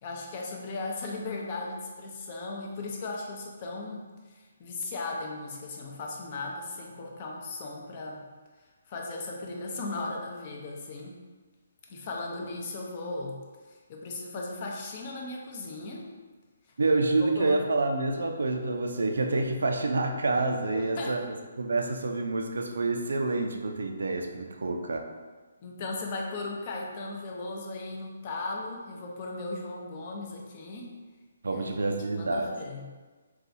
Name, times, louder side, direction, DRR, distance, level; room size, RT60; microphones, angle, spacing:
voice 1, 0.0-8.3 8.9-11.2 11.9-16.1 17.2-17.6 20.7-21.2 25.6-31.0 31.4-33.0, left 3 dB, 35° left, -1 dB, 0.6 m, -37 dB
voice 2, 16.8-21.2 21.6-25.1 31.4-32.5, right 3 dB, 70° right, 4 dB, 0.4 m, -28 dB
3.9 x 2.3 x 2.6 m, 1.4 s
figure-of-eight pair, 140°, 0 cm